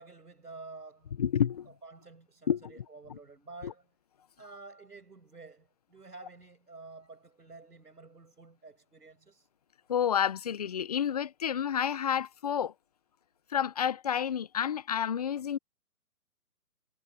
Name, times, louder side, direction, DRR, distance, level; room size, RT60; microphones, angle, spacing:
voice 1, 0.0-1.1 1.8-3.8 4.4-9.5, right 3 dB, 85° right, 6.9 m, -50 dB
voice 2, 1.2-1.7 2.5-2.8 3.1-3.2 3.6-3.7 9.9-12.7 13.5-15.6, left 8 dB, 25° left, 0.9 m, -30 dB
figure-of-eight pair, 150°, 46 cm